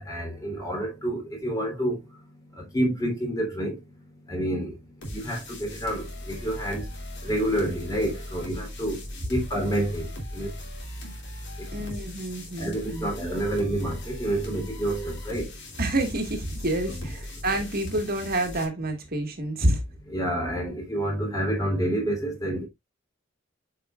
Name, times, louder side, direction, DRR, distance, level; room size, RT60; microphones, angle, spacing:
voice 1, 0.0-2.0 2.5-3.8 4.3-4.8 5.1-6.9 7.2-9.0 9.3-10.5 11.6-11.7 12.6-15.5 17.0-17.1 20.1-22.7, right 1 dB, 20° left, 3.3 m, -28 dB
sound 1, 5.0-18.6, left 1 dB, 60° left, 2.7 m, -39 dB
voice 2, 11.7-13.1 15.8-19.8, right 1 dB, 50° right, 1.7 m, -28 dB
8.5 x 5.6 x 2.4 m
head